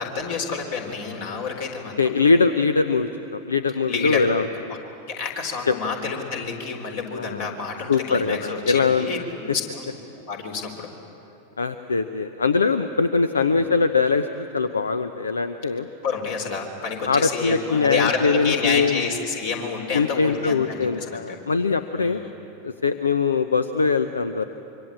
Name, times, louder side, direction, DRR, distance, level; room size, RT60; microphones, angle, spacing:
voice 1, 0.0-2.1 3.9-4.3 4.7-4.8 5.1-9.8 10.3-10.9 13.4-13.6 16.0-21.4 21.9-22.3, left 5 dB, 50° left, 3 dB, 4.0 m, -29 dB
voice 2, 2.0-4.5 5.7-5.8 7.2-7.5 7.9-9.1 11.6-15.9 17.1-19.0 19.9-22.2 22.6-24.4, left 4 dB, 75° left, 11 dB, 0.7 m, -22 dB
25.5 x 24.5 x 8.7 m, 2.9 s
figure-of-eight pair, 90°, 0 cm